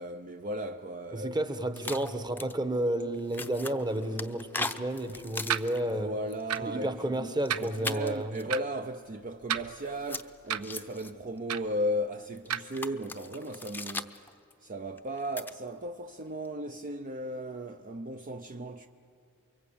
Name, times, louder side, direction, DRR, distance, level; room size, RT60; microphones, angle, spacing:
voice 1, 0.0-1.4 1.8-1.9 5.1-5.2 5.9-14.3 14.6-18.9, equal, 40° right, 0.6 m, -36 dB
voice 2, 1.1-6.1 6.6-8.3, right 1 dB, 20° right, 1.2 m, -31 dB
sound 1, 1.8-2.5 3.1-5.9 6.3-6.6 7.3-8.5 9.8-11.1 12.3-14.5 15.0-15.5 16.2-16.5, left 3 dB, 10° left, 0.7 m, -39 dB
sound 2, 5.5-5.7 6.5-6.7 7.5-7.7 8.5-8.6 9.4-10.0 10.5-10.7 11.5-11.7 12.5-12.6, right 9 dB, 75° right, 0.8 m, -31 dB
29.0 x 23.5 x 8.6 m
head